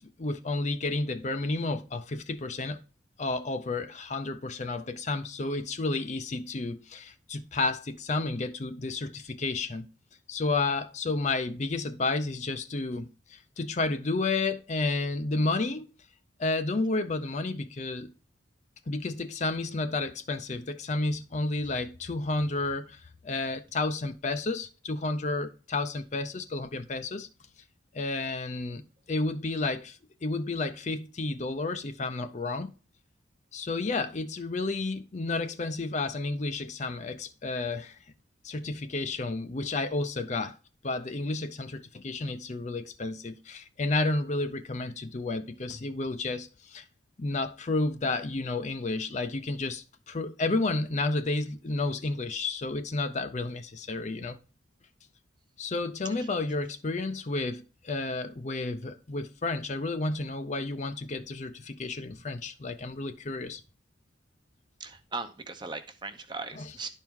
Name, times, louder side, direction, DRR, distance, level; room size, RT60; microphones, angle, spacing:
voice 1, 0.0-2.8 3.2-9.9 10.3-15.9 16.4-18.1 18.9-27.3 27.9-28.8 29.1-32.7 33.5-38.0 38.4-40.6 40.8-46.8 47.2-54.4 55.6-63.6 66.6-66.7, left 3 dB, 35° left, 0.5 m, -31 dB
voice 2, 64.8-66.9, right 3 dB, 20° right, 0.8 m, -38 dB
11.5 x 4.6 x 3.6 m
head